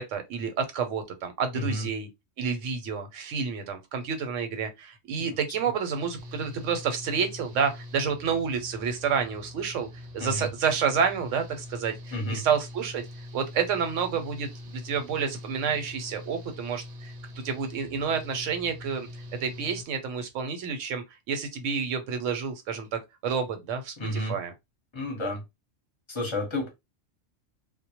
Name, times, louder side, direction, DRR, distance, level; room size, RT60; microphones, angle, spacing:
voice 1, 0.0-2.1 2.4-9.9 10.1-13.0 13.3-17.1 17.4-19.1 19.4-24.5, right 6 dB, 85° right, 1.0 m, -29 dB
voice 2, 1.5-1.9 5.2-5.3 10.2-10.5 12.1-12.4 24.0-24.4 24.9-25.4 26.1-26.7, left 1 dB, 30° left, 0.7 m, -31 dB
Engine / Mechanical fan, 5.9-19.8, left 1 dB, 60° right, 0.7 m, -43 dB
2.1 x 2.0 x 2.8 m
omnidirectional pair, 1.3 m